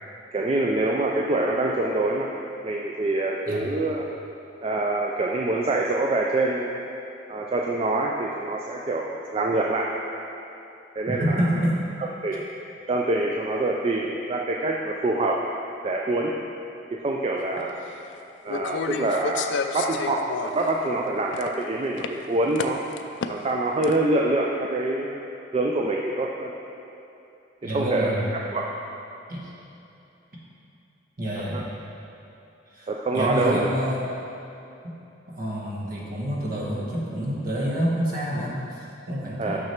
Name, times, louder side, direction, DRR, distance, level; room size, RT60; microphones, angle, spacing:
voice 1, 0.3-2.3 2.6-4.1 4.6-6.8 7.3-10.0 11.0-11.5 12.0-12.5 12.9-15.4 15.8-16.3 17.0-17.8 18.4-22.8 23.3-25.2 25.5-26.5 27.7-28.1 28.5-28.6 31.5-31.6 32.9-33.7 39.4-39.6, right 2 dB, 30° right, -1 dB, 0.4 m, -25 dB
voice 2, 11.1-11.8 27.6-28.4 29.3-29.5 31.2-31.7 32.7-34.0 34.8-34.9 35.3-39.6, equal, 50° right, -5 dB, 1.3 m, -28 dB
sound 1, 17.6-17.7 18.5-20.7 21.1-21.6 22.0-22.1 22.5-23.5 23.8-23.9, left 5 dB, 70° left, 0.3 m, -31 dB
6.3 x 6.0 x 4.4 m, 2.8 s
head